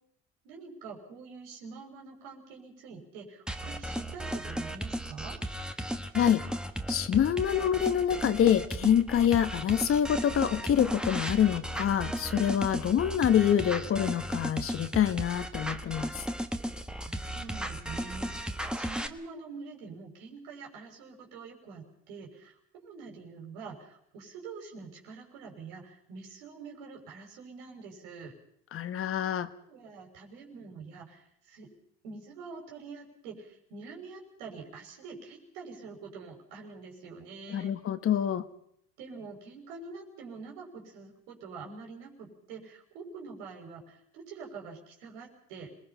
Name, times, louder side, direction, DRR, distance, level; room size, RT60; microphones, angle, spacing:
voice 1, 0.4-5.4 17.1-22.6 22.8-28.3 29.6-31.7 32.0-37.8 39.0-45.8, right 4 dB, 85° right, 2 dB, 6.0 m, -46 dB
sound 1, 3.5-19.1, equal, 5° right, 1.4 m, -35 dB
voice 2, 6.1-6.4 6.9-16.3 28.7-29.5 37.5-38.4, left 9 dB, 45° left, 11 dB, 1.4 m, -26 dB
26.5 x 20.0 x 5.7 m, 0.73 s
supercardioid pair, 105°, 31 cm